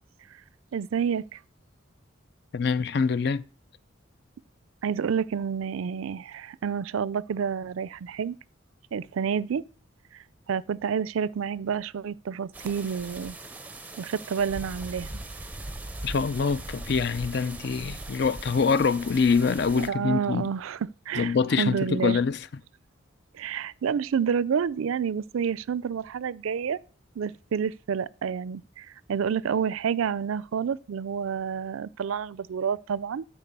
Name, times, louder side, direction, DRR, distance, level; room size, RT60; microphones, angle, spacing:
voice 1, 0.7-1.4 4.8-8.3 8.9-9.7 10.5-13.4 14.0-15.1 19.8-20.8 21.1-22.2 23.3-26.8 27.2-33.3, right 7 dB, 80° right, 0.4 m, -29 dB
voice 2, 2.5-3.4 16.0-20.5 21.2-22.5, left 5 dB, 50° left, 0.4 m, -25 dB
sound 1, 12.5-19.9, right 2 dB, 10° right, 0.6 m, -40 dB
12.5 x 4.8 x 6.7 m
head